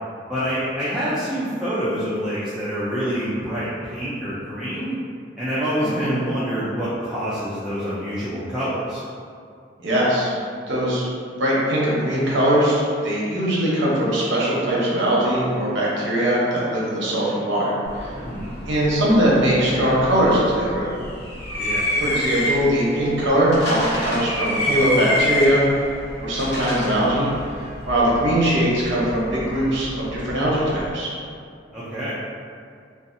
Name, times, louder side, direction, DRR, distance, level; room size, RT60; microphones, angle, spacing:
voice 1, 0.3-5.0 5.4-9.0 18.1-18.5 21.6-21.9 31.7-32.2, equal, 5° right, -13 dB, 0.3 m, -26 dB
voice 2, 5.8-6.1 9.8-10.3 10.7-11.1 11.4-18.1 18.7-20.9 22.0-25.6 26.2-27.3 27.8-31.1, right 1 dB, 80° right, -6 dB, 0.7 m, -21 dB
sound 1, 17.8-30.9, left 1 dB, 60° left, 0.8 m, -29 dB
2.6 x 2.3 x 2.5 m, 2.3 s
head